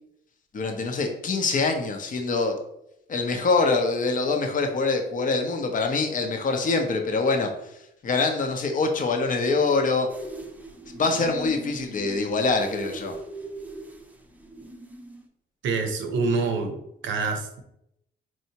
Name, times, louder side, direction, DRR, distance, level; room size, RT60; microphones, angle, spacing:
voice 1, 0.5-2.6 3.1-7.5 8.0-10.1 11.0-13.2, left 3 dB, 45° left, 4 dB, 0.7 m, -24 dB
sound 1, 10.1-15.3, right 2 dB, 10° right, 0.5 m, -40 dB
voice 2, 15.6-16.8 17.0-17.6, right 4 dB, 75° right, 5 dB, 0.7 m, -26 dB
4.4 x 2.7 x 2.8 m, 0.78 s
cardioid pair, 85°, 20 cm